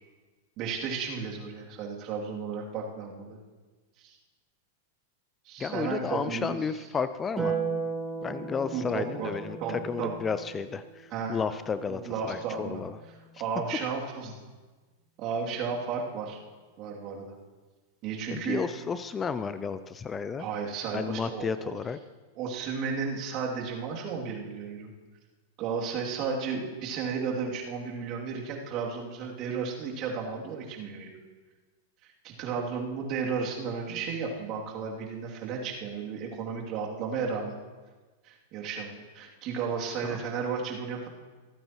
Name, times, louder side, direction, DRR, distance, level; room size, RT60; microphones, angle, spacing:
voice 1, 0.6-3.4 4.0-4.2 5.4-6.4 8.7-9.3 9.6-10.2 11.1-11.4 11.9-12.8 13.4-14.3 15.2-16.4 16.8-17.4 18.0-18.6 20.4-21.7 22.4-24.9 25.6-31.1 32.0-37.6 38.2-41.1, right 5 dB, 45° right, -1 dB, 2.7 m, -33 dB
voice 2, 5.6-7.6 8.2-13.0 18.3-20.5 20.9-22.0 40.0-40.2, left 6 dB, 20° left, 13 dB, 0.5 m, -32 dB
Harp, 7.4-13.9 15.5-16.5, right 5 dB, 10° right, 3.3 m, -38 dB
27.0 x 9.0 x 3.0 m, 1.3 s
hypercardioid pair, 110°, 0 cm